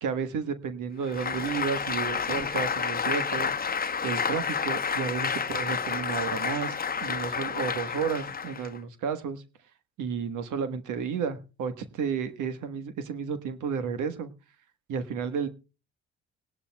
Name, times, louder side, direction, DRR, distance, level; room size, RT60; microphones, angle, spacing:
voice 1, 0.0-9.4 10.0-14.3 14.9-15.5, right 6 dB, 80° right, 10 dB, 1.4 m, -32 dB
Applause, 1.0-8.8, left 6 dB, 30° left, 0.9 m, -30 dB
19.0 x 11.5 x 2.3 m, 0.32 s
cardioid pair, 90°, 30 cm